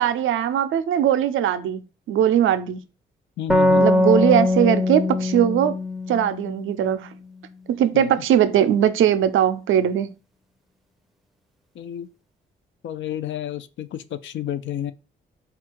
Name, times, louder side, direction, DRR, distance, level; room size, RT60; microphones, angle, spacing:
voice 1, 0.0-1.8 2.1-2.8 3.8-5.8 6.1-7.1 7.7-10.1, right 10 dB, 80° right, 0.5 m, -20 dB
voice 2, 3.4-3.8 7.9-8.1 11.8-12.1 12.8-14.9, left 11 dB, 70° left, 0.4 m, -30 dB
sound 1, 3.5-7.0, left 2 dB, ahead, 0.5 m, -21 dB
3.7 x 2.4 x 4.4 m
supercardioid pair, 55°, 20 cm